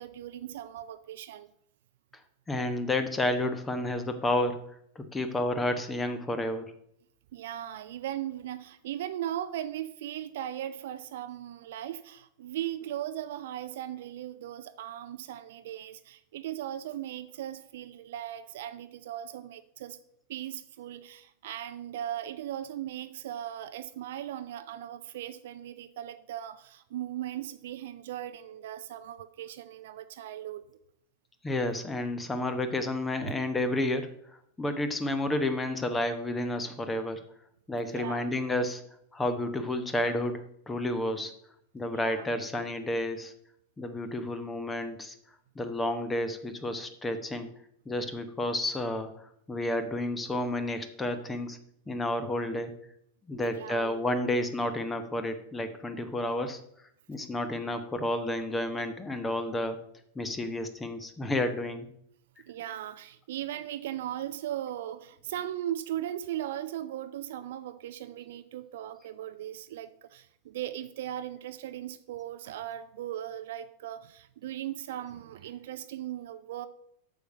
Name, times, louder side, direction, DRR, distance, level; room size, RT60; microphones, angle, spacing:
voice 1, 0.0-1.5 7.3-20.0 20.3-30.6 33.2-33.3 37.8-38.3 41.9-42.3 53.3-54.0 62.5-76.7, right 12 dB, 55° right, 11 dB, 0.5 m, -38 dB
voice 2, 2.5-4.6 5.0-6.7 31.4-34.1 34.6-37.2 37.7-38.8 39.1-41.3 41.7-43.3 43.8-45.1 45.6-47.5 47.9-51.6 51.9-52.7 53.3-56.6 57.1-59.8 60.2-61.9, left 1 dB, 15° left, 9 dB, 0.9 m, -31 dB
8.1 x 6.5 x 6.6 m, 0.72 s
figure-of-eight pair, 90°, 0 cm